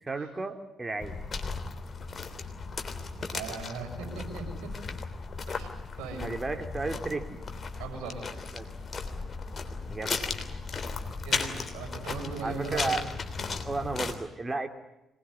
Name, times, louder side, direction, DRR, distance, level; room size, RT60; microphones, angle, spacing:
voice 1, 0.0-1.2 6.2-7.4 8.5-8.6 9.9-10.4 12.4-13.1 13.6-14.7, right 3 dB, 30° right, 7 dB, 3.0 m, -33 dB
sound 1, 1.0-14.1, left 4 dB, 45° left, 3.2 m, -36 dB
voice 2, 3.3-4.7 5.5-5.7 6.0-6.3 7.8-8.3 11.2-12.9, right 5 dB, 70° right, 2 dB, 7.0 m, -38 dB
25.0 x 20.0 x 9.8 m, 0.90 s
hypercardioid pair, 40°, 0 cm